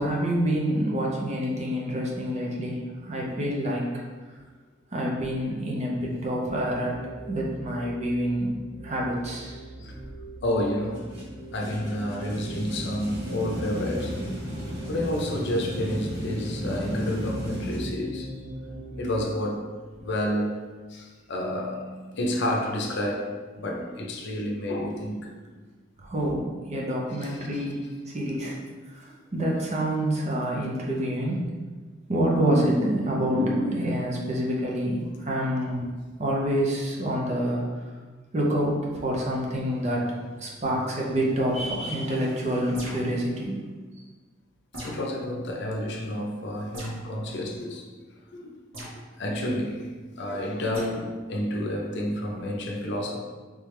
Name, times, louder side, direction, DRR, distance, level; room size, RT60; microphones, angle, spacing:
voice 1, 0.0-3.8 4.9-8.6 8.8-9.9 23.8-23.9 26.0-28.6 28.9-31.4 32.1-35.9 36.2-37.6 38.3-40.0 40.4-43.6, equal, 35° right, 0.7 m, -27 dB
sound 1, 6.5-19.2, right 1 dB, 25° left, 0.8 m, -42 dB
voice 2, 10.4-11.1 11.5-14.2 14.9-18.3 19.0-19.7 20.0-20.6 20.9-25.4 27.2-27.6 44.8-47.8 48.3-48.5 49.2-49.9 50.2-53.2, left 1 dB, 60° left, 0.6 m, -30 dB
sound 2, 10.9-17.8, equal, 55° right, 1.4 m, -34 dB
sound 3, 42.7-43.2 44.7-45.1 46.7-47.0 48.7-49.0 50.7-50.9, equal, 80° right, 1.5 m, -38 dB
3.4 x 3.3 x 3.2 m
head